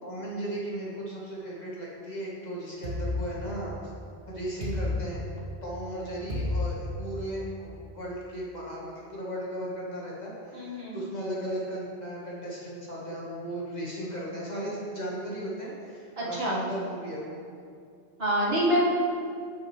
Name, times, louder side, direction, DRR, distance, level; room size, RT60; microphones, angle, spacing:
voice 1, 0.0-3.7 4.3-5.2 5.6-17.4, right 1 dB, 40° left, -5 dB, 1.6 m, -36 dB
sound 1, 2.8-3.9 4.6-5.7 6.3-7.4, left 2 dB, 80° right, 1.9 m, -32 dB
voice 2, 10.5-11.0 16.2-16.6 18.2-18.8, equal, 65° right, -7 dB, 2.0 m, -26 dB
9.4 x 6.4 x 3.2 m, 2.3 s
omnidirectional pair, 1.1 m